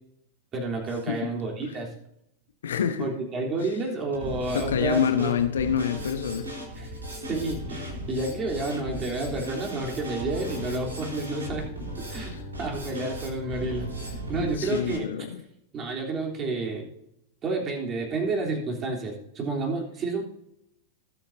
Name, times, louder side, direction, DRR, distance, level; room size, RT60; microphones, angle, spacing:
voice 1, 0.5-1.9 3.0-5.4 6.7-11.6 12.1-13.9 14.3-15.0 15.7-16.9 17.4-20.2, right 3 dB, 25° right, -1 dB, 3.4 m, -30 dB
voice 2, 2.6-3.1 4.5-6.6 12.2-12.4 14.4-15.4, left 8 dB, 65° left, 8 dB, 1.1 m, -27 dB
Drum kit, 4.1-15.0, equal, 75° right, 4.1 m, -37 dB
20.0 x 8.4 x 2.7 m, 0.80 s
figure-of-eight pair, 90°, 0 cm